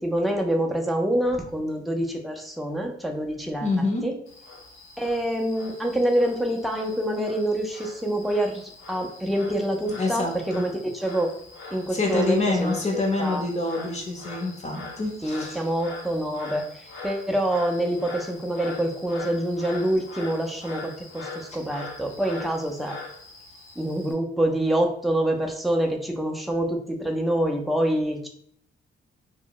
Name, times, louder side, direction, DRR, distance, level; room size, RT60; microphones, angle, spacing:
voice 1, 0.0-3.7 4.0-4.1 5.0-11.3 11.7-12.8 13.2-13.5 15.2-23.0 23.8-28.3, right 1 dB, ahead, 1 dB, 0.4 m, -26 dB
voice 2, 3.6-4.0 10.0-10.6 11.9-15.6, left 3 dB, 35° left, 1 dB, 0.7 m, -26 dB
Frog, 4.3-24.1, left 3 dB, 80° left, 0.7 m, -42 dB
2.1 x 2.0 x 3.7 m, 0.63 s
cardioid pair, 90°, 20 cm